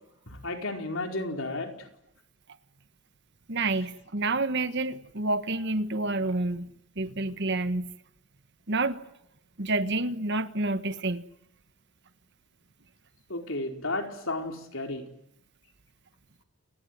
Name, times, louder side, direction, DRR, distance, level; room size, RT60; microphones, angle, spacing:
voice 1, 0.3-1.9 13.3-15.0, left 2 dB, 60° left, 4.6 m, -33 dB
voice 2, 3.5-6.7 7.0-8.0 8.7-9.0 9.6-11.2, right 2 dB, 50° right, 1.4 m, -28 dB
29.0 x 21.0 x 9.5 m
head